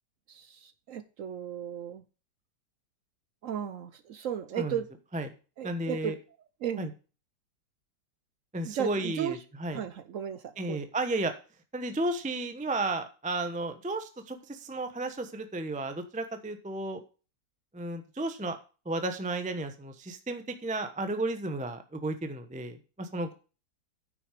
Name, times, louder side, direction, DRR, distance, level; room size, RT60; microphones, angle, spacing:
voice 1, 0.3-2.0 3.4-4.9 5.6-6.2 6.6-6.9 8.6-9.4 9.7-10.9, right 9 dB, 65° right, 0.8 m, -35 dB
voice 2, 5.6-6.1 6.8-6.9 8.5-9.8 10.6-11.3 11.7-17.0 17.7-18.6 18.8-23.3, right 2 dB, 10° right, 0.5 m, -33 dB
9.4 x 6.3 x 4.9 m
omnidirectional pair, 1.9 m